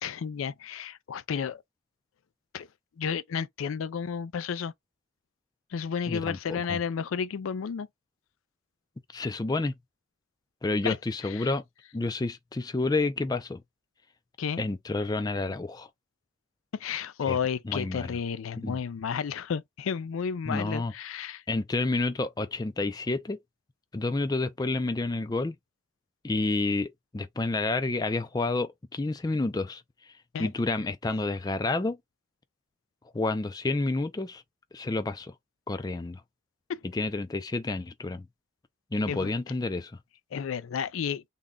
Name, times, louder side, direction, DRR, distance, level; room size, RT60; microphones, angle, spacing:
voice 1, 0.0-1.6 2.5-2.7 3.0-4.7 5.7-7.9 10.8-11.0 11.2-11.5 14.4-14.6 16.7-21.4 30.3-30.5 36.7-36.8 39.1-39.3 40.3-41.2, left 7 dB, 85° left, 0.4 m, -32 dB
voice 2, 6.1-6.8 9.1-9.7 10.6-11.6 11.9-13.6 14.6-15.9 17.3-17.4 17.7-18.2 18.6-18.8 20.5-20.9 21.5-23.4 23.9-25.5 26.2-29.8 30.4-32.0 33.1-34.4 34.7-35.3 35.7-36.2 36.9-38.3 38.9-39.9, left 2 dB, 20° left, 0.3 m, -29 dB
3.6 x 2.2 x 3.6 m
head